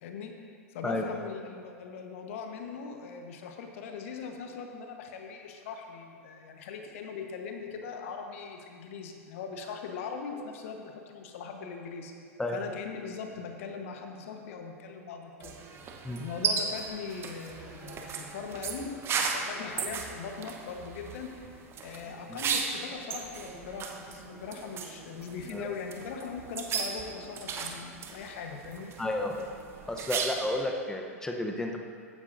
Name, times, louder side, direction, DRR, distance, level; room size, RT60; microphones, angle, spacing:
voice 1, 0.0-12.1 12.5-15.8 16.2-28.9, left 5 dB, 60° left, 4 dB, 1.1 m, -40 dB
sound 1, 15.4-30.6, right 5 dB, 30° right, 1.0 m, -36 dB
voice 2, 29.0-29.3 29.9-31.8, left 1 dB, 5° left, 2 dB, 0.8 m, -32 dB
14.5 x 9.9 x 2.6 m, 2.2 s
hypercardioid pair, 95°, 8 cm